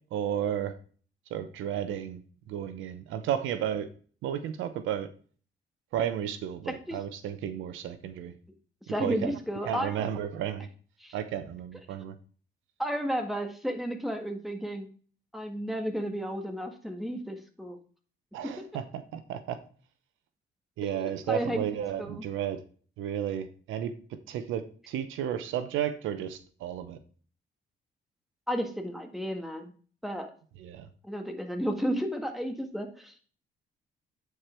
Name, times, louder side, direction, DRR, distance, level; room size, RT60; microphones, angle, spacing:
voice 1, 0.1-0.7 1.3-2.2 2.5-3.9 4.2-5.1 5.9-8.3 9.0-9.3 9.6-10.7 11.1-12.1 18.3-19.6 20.8-22.6 23.0-27.0 30.6-30.9, right 9 dB, 90° right, 11 dB, 0.8 m, -33 dB
voice 2, 6.6-7.0 8.9-10.0 11.0-11.1 12.8-14.9 15.3-17.8 18.6-18.7 20.8-21.6 22.0-22.2 28.5-29.7 30.0-30.3 31.0-33.1, equal, ahead, 4 dB, 1.7 m, -33 dB
8.6 x 4.7 x 4.4 m, 0.42 s
cardioid pair, 90°, 20 cm